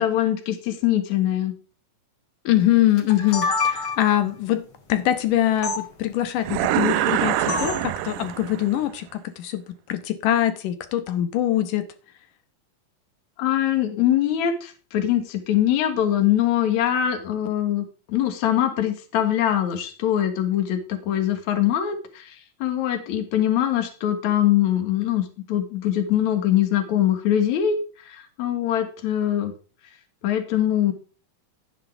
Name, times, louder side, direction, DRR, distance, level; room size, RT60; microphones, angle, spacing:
voice 1, 0.0-1.5 13.4-22.4 22.6-27.8 28.1-29.5 30.2-30.9, left 11 dB, 65° left, 2.8 m, -23 dB
voice 2, 2.4-11.9, left 13 dB, 80° left, 2.8 m, -23 dB
sound 1, 3.0-4.2 5.6-5.8 7.5-7.9, left 3 dB, 40° left, 3.0 m, -26 dB
sound 2, 6.4-8.8, right 13 dB, 85° right, 2.2 m, -24 dB
11.5 x 9.9 x 3.4 m
omnidirectional pair, 3.7 m